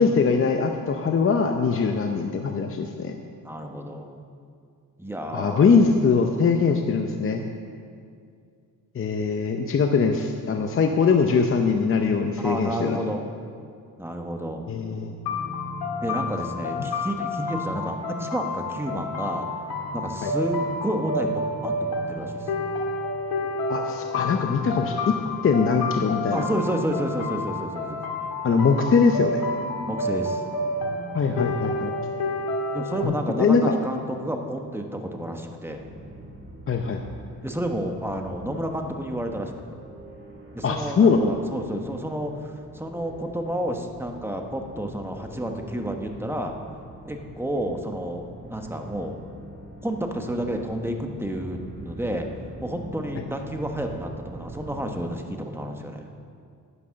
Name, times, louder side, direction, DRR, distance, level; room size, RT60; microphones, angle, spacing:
voice 1, 0.0-3.1 5.3-7.4 8.9-13.0 14.7-15.1 16.7-16.9 20.2-20.3 23.7-25.1 25.4-26.5 28.4-29.4 31.1-31.9 33.0-33.7 36.7-37.0 40.6-41.3, left 5 dB, 35° left, 4 dB, 0.7 m, -22 dB
voice 2, 3.4-4.2 5.0-5.9 12.4-13.2 14.0-14.7 16.0-19.5 19.9-22.5 26.3-28.0 29.8-30.4 32.7-35.8 37.4-39.5 40.5-46.5 47.0-49.2 49.8-52.3 52.6-56.1, right 1 dB, 5° right, 3 dB, 1.2 m, -30 dB
sound 1, 15.3-33.0, left 2 dB, 75° left, 2.1 m, -30 dB
sound 2, 35.6-54.8, right 1 dB, 35° right, 3.1 m, -44 dB
10.0 x 9.8 x 6.4 m, 2.3 s
cardioid pair, 105°, 36 cm